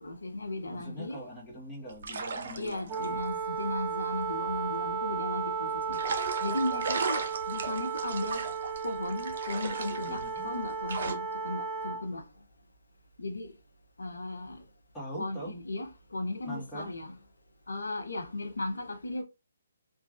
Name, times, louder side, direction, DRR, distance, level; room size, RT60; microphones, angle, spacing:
voice 1, 0.0-1.2 2.6-8.5 8.8-12.3 13.2-13.5 14.0-14.6 15.2-17.2 17.7-19.2, left 2 dB, 85° left, 0.6 m, -36 dB
voice 2, 0.7-3.2 10.1-10.5 14.9-15.5 16.5-16.9, equal, 10° left, 1.3 m, -42 dB
sound 1, 1.9-5.1 5.9-11.1, right 4 dB, 55° right, 0.7 m, -37 dB
Wind instrument woodwind instrument, 2.9-12.1, right 5 dB, 30° right, 0.3 m, -34 dB
3.0 x 2.3 x 2.5 m
hypercardioid pair, 150°, 0 cm